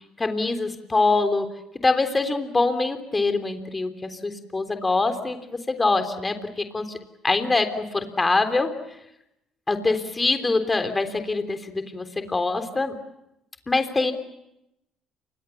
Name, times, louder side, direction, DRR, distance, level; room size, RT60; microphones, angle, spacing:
voice 1, 0.2-1.5 1.8-7.0 7.2-8.7 9.7-12.9 13.7-14.1, left 3 dB, 25° left, 8 dB, 3.5 m, -24 dB
29.5 x 25.0 x 7.2 m, 0.86 s
supercardioid pair, 70°, 0 cm